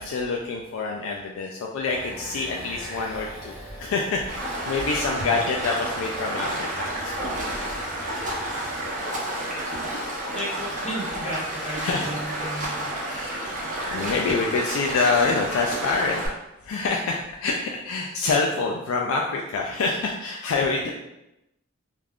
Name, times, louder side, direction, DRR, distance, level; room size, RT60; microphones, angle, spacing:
voice 1, 0.0-3.5 3.8-7.2 11.8-12.1 13.1-13.5 13.9-16.2 16.6-20.9, left 4 dB, 70° left, 0 dB, 0.3 m, -26 dB
sound 1, 1.9-8.9, equal, 10° right, 1.1 m, -41 dB
Stream, 4.3-16.3, right 1 dB, 40° right, 0.7 m, -30 dB
voice 2, 10.3-12.9, right 1 dB, 35° left, -6 dB, 1.0 m, -33 dB
2.4 x 2.3 x 3.4 m, 0.90 s
head